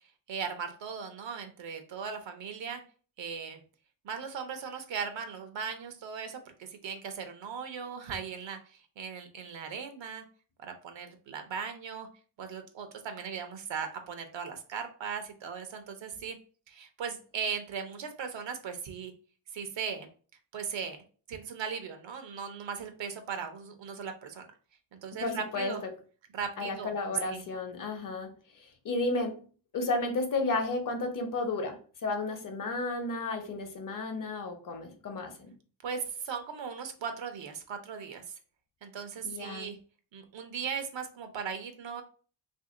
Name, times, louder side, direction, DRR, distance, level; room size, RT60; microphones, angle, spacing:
voice 1, 0.3-2.8 3.2-3.6 4.0-10.2 10.6-12.1 12.4-16.4 16.7-19.1 19.5-20.1 20.5-21.0 21.3-24.5 24.9-25.8 26.3-27.4 35.8-38.3 38.8-39.8 40.1-42.0, right 6 dB, 75° right, 7 dB, 0.8 m, -38 dB
voice 2, 25.2-25.7 26.6-28.3 28.6-29.4 29.7-35.5 39.2-39.7, left 3 dB, 45° left, 5 dB, 0.9 m, -33 dB
2.8 x 2.7 x 3.7 m, 0.40 s
cardioid pair, 95°, 45 cm